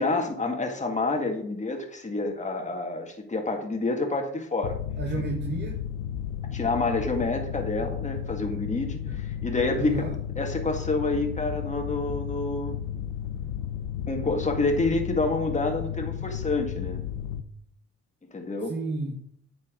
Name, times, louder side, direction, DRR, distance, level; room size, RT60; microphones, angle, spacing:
voice 1, 0.0-4.8 5.2-5.3 6.5-10.0 10.4-12.8 14.1-17.0 18.3-18.7, left 3 dB, 25° left, 3 dB, 2.0 m, -28 dB
Mechanical fan, 4.6-17.4, left 10 dB, 90° left, 0.7 m, -33 dB
voice 2, 5.0-5.8 9.1-9.2 9.7-10.1 18.6-19.2, right 3 dB, 35° right, 1 dB, 1.7 m, -32 dB
9.5 x 7.6 x 3.9 m, 0.66 s
cardioid pair, 90°, 30 cm